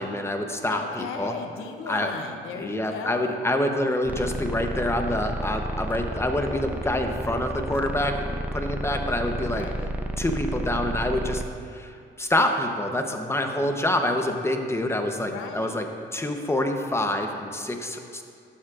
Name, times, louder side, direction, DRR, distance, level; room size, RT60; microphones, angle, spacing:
voice 1, 0.0-1.3 1.9-2.1 2.6-9.6 10.2-11.4 11.7-15.9 16.1-18.2, left 1 dB, 15° left, 5 dB, 0.8 m, -26 dB
voice 2, 0.7-3.4 9.4-9.8 15.2-15.8, left 5 dB, 85° left, 5 dB, 0.8 m, -36 dB
sound 1, 4.1-11.5, right 1 dB, 10° right, 0.5 m, -31 dB
13.0 x 7.2 x 2.4 m, 2.3 s
cardioid pair, 90°, 20 cm